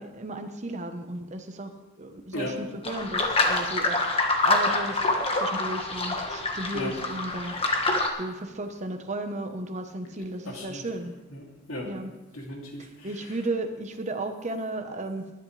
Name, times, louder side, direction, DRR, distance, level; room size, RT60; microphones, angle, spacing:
voice 1, 0.0-4.1 4.4-7.6 8.2-11.2 11.8-12.1 12.8-15.3, right 2 dB, 35° right, 6 dB, 1.1 m, -34 dB
sound 1, 2.8-8.1, left 2 dB, 30° left, 1.4 m, -26 dB
voice 2, 10.1-10.9 11.3-11.9 12.3-13.1, left 1 dB, 85° left, -1 dB, 2.8 m, -36 dB
20.0 x 10.0 x 3.3 m, 1.1 s
head